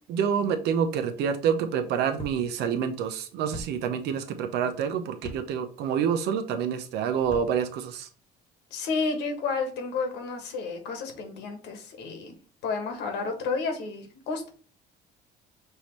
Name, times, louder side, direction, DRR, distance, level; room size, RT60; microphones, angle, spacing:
voice 1, 0.1-8.1, right 7 dB, 80° right, 7 dB, 0.8 m, -27 dB
sound 1, 2.2-2.4 3.5-3.7 5.2-5.4 7.2-7.5, left 1 dB, 25° left, 1.2 m, -39 dB
voice 2, 8.7-12.4 12.6-14.5, left 4 dB, 85° left, 4 dB, 1.3 m, -31 dB
5.7 x 2.8 x 3.2 m, 0.40 s
cardioid pair, 110°, 17 cm